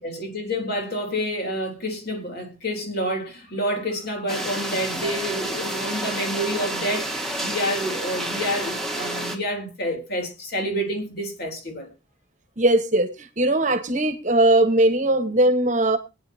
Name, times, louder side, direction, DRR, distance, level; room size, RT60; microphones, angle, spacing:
voice 1, 0.0-11.9, equal, 55° left, 3.4 m, -28 dB
sound 1, 4.3-9.4, right 1 dB, ahead, 1.6 m, -29 dB
voice 2, 12.6-16.0, right 1 dB, 40° right, 1.3 m, -19 dB
22.5 x 9.4 x 2.8 m
head